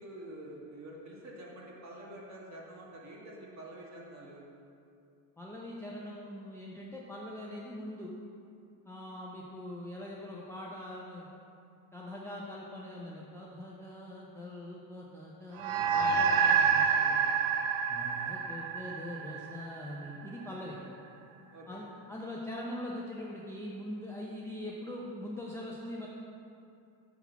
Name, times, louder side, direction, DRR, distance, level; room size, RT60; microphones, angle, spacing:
voice 1, 0.0-4.4 21.5-21.9, right 1 dB, 35° right, -3 dB, 1.5 m, -47 dB
voice 2, 5.4-8.1 8.8-11.3 11.9-17.4 17.9-20.8 21.7-26.1, left 1 dB, 5° left, -4 dB, 0.5 m, -42 dB
sound 1, 15.6-20.3, right 6 dB, 75° right, 0.6 m, -28 dB
6.0 x 3.8 x 5.8 m, 2.5 s
supercardioid pair, 110°, 48 cm